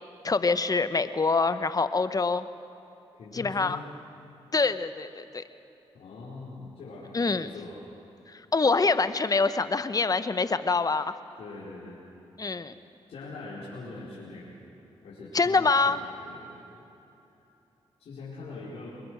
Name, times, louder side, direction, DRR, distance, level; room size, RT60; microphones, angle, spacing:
voice 1, 0.2-2.4 3.3-3.8 4.5-5.4 7.1-7.5 8.3-11.1 12.4-12.7 15.3-16.0, left 4 dB, 35° left, 12 dB, 1.0 m, -25 dB
voice 2, 3.2-3.8 5.9-7.8 11.4-12.0 13.1-14.6 15.0-16.8 18.0-18.9, left 3 dB, 75° left, -9 dB, 4.7 m, -42 dB
23.5 x 21.0 x 6.4 m, 2.9 s
supercardioid pair, 50°, 11 cm